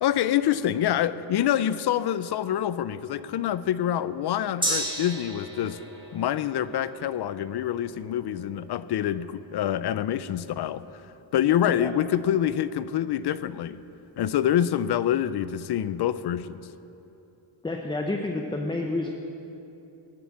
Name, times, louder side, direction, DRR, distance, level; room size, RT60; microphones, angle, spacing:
voice 1, 0.0-5.8 6.1-10.8 11.3-13.8 14.2-16.6, left 10 dB, 55° left, 15 dB, 0.6 m, -26 dB
Gong, 4.6-12.4 12.7-12.8, right 1 dB, 10° right, 2.7 m, -37 dB
voice 2, 17.6-19.1, left 2 dB, 10° left, 3 dB, 0.7 m, -29 dB
19.0 x 7.8 x 7.1 m, 2.9 s
cardioid pair, 135°, 47 cm